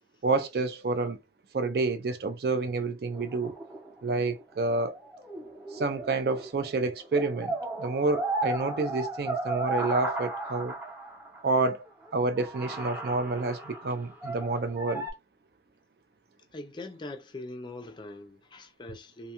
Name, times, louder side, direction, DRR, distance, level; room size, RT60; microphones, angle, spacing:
voice 1, 0.2-1.2 1.5-3.6 4.0-5.0 5.7-10.7 11.4-11.8 12.1-15.1, right 3 dB, 60° right, 0.4 m, -29 dB
sound 1, 3.1-6.7 7.0-11.5 12.0-12.1 12.4-15.1, right 2 dB, 10° right, 0.7 m, -35 dB
voice 2, 16.5-19.3, left 2 dB, 25° left, 0.4 m, -42 dB
2.6 x 2.3 x 2.8 m
head